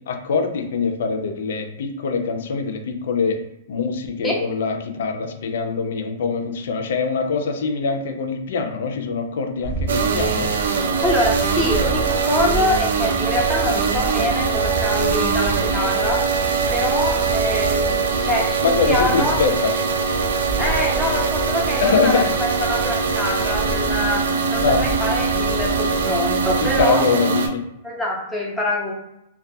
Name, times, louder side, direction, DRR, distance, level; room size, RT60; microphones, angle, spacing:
voice 1, 0.1-3.4 3.7-10.5 18.6-19.7 21.8-22.3 24.6-24.8 26.6-27.6, left 5 dB, 70° left, 5 dB, 0.4 m, -23 dB
sound 1, 9.6-26.8, right 3 dB, 50° right, 0.7 m, -31 dB
sound 2, 9.9-27.5, right 5 dB, 90° right, 0.3 m, -22 dB
voice 2, 11.0-16.2 16.7-19.4 20.6-24.3 24.5-27.0 27.8-28.9, left 1 dB, ahead, -5 dB, 0.5 m, -25 dB
2.3 x 2.2 x 2.6 m, 0.84 s
hypercardioid pair, 160°, 0 cm